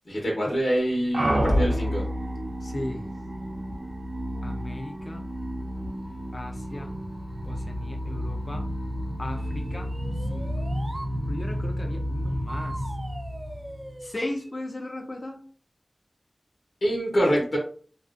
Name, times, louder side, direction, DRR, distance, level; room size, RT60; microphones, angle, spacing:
voice 1, 0.0-2.0 16.8-17.6, equal, 70° left, -2 dB, 0.8 m, -25 dB
sound 1, 1.1-14.0, equal, 70° right, 0.7 m, -30 dB
voice 2, 2.6-3.1 4.4-5.2 6.3-6.9 7.4-8.6 9.2-9.9 10.3-10.5 11.3-12.8 14.0-15.4, left 1 dB, 50° left, 4 dB, 0.5 m, -36 dB
sound 2, 9.3-11.1 12.5-14.5, right 1 dB, 35° right, 0.4 m, -41 dB
2.4 x 2.3 x 2.4 m, 0.43 s
wide cardioid pair, 55°, 0 cm